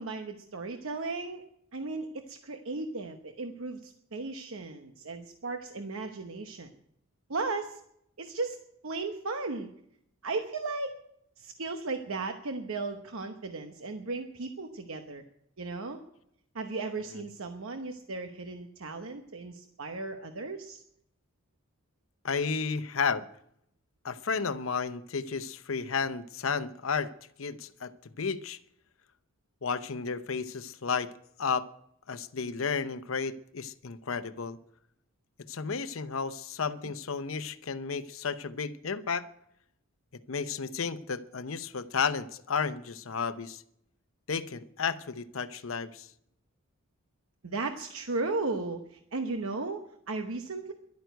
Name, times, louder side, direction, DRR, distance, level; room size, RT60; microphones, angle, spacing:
voice 1, 0.0-1.5 1.7-6.7 7.3-7.8 8.2-9.7 10.2-11.0 11.4-15.2 15.6-16.0 16.5-20.8 47.4-50.7, right 3 dB, 85° right, 6 dB, 1.0 m, -36 dB
voice 2, 22.2-23.3 24.0-27.1 27.4-28.6 29.6-31.1 31.4-31.7 32.1-34.6 35.5-39.3 40.3-43.6 44.3-46.1, left 5 dB, 80° left, 12 dB, 0.7 m, -32 dB
12.0 x 9.2 x 9.2 m, 0.72 s
head